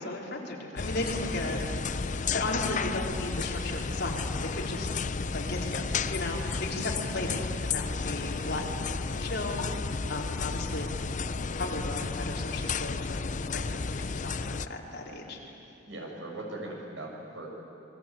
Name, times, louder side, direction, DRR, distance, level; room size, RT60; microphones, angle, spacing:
voice 1, 0.0-1.7 2.1-4.9 5.3-8.7 9.0-10.9 11.6-15.4, left 2 dB, 60° left, -1 dB, 4.1 m, -36 dB
sound 1, 0.8-14.7, left 4 dB, 45° left, 0.6 m, -32 dB
voice 2, 15.8-17.5, right 2 dB, 80° right, 0 dB, 6.4 m, -39 dB
27.0 x 22.0 x 8.6 m, 2.8 s
head